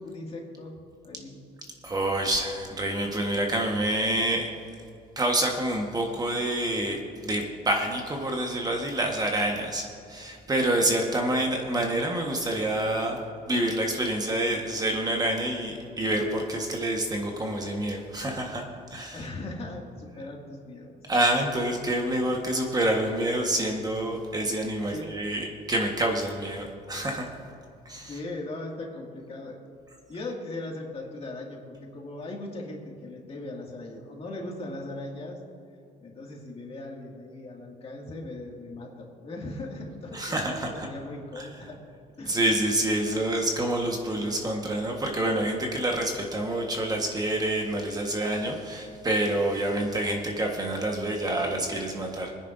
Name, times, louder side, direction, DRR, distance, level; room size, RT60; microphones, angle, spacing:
voice 1, 0.0-1.4 19.1-21.1 22.3-22.5 24.9-25.1 28.1-29.6 30.1-35.4 36.0-41.8 42.2-42.5, left 2 dB, 35° left, -1 dB, 2.2 m, -39 dB
voice 2, 1.8-4.5 5.2-13.2 13.5-18.6 18.9-19.2 21.1-27.3 27.8-28.1 40.1-40.9 41.4-41.5 42.2-52.3, right 1 dB, 25° right, 1 dB, 1.4 m, -27 dB
21.5 x 10.0 x 2.6 m, 2.4 s
cardioid pair, 110°, 17 cm